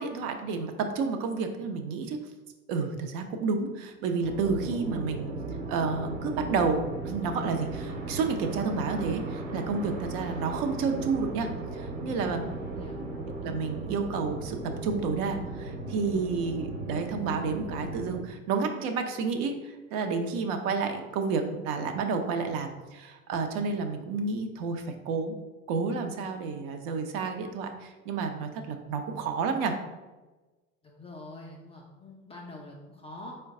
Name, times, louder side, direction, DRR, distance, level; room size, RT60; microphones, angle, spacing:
voice 1, 0.0-2.2 2.7-5.3 5.7-12.5 13.4-25.3 25.7-29.7, right 4 dB, 45° right, 5 dB, 0.6 m, -30 dB
sound 1, 4.2-18.2, right 2 dB, 65° right, 1.1 m, -36 dB
voice 2, 12.2-13.0 30.8-33.3, left 2 dB, 15° left, -2 dB, 0.4 m, -45 dB
4.4 x 2.2 x 3.6 m, 1.2 s
figure-of-eight pair, 75°, 42 cm